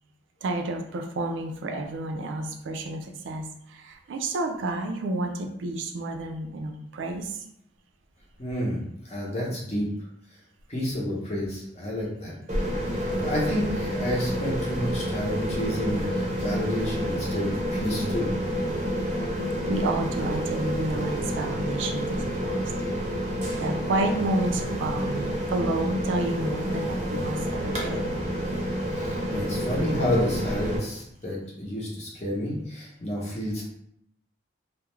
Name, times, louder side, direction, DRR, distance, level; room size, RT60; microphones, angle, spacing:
voice 1, 0.4-7.4 19.6-22.6 23.6-28.0, right 2 dB, 75° right, 4 dB, 0.4 m, -30 dB
voice 2, 8.4-9.9 10.7-12.3 12.9-18.3 28.9-33.6, equal, 35° left, -4 dB, 0.7 m, -30 dB
sound 1, 12.5-30.8, equal, 35° right, 0.6 m, -29 dB
2.3 x 2.1 x 3.0 m, 0.74 s
head